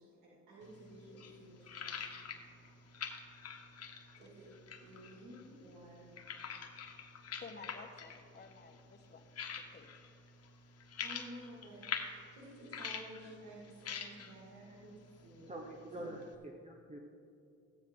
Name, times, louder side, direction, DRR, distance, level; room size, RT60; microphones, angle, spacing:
voice 1, 0.0-2.7 4.0-4.5 4.8-6.2 11.0-15.5, right 1 dB, 80° right, -6 dB, 2.7 m, -53 dB
sound 1, 0.6-16.3, left 6 dB, 55° left, 1.3 m, -47 dB
voice 2, 7.4-9.3 9.7-9.9, left 4 dB, 35° left, 5 dB, 1.2 m, -53 dB
voice 3, 15.5-17.0, right 1 dB, 20° right, 1 dB, 1.1 m, -46 dB
15.0 x 9.2 x 3.9 m, 2.5 s
cardioid pair, 90°, 30 cm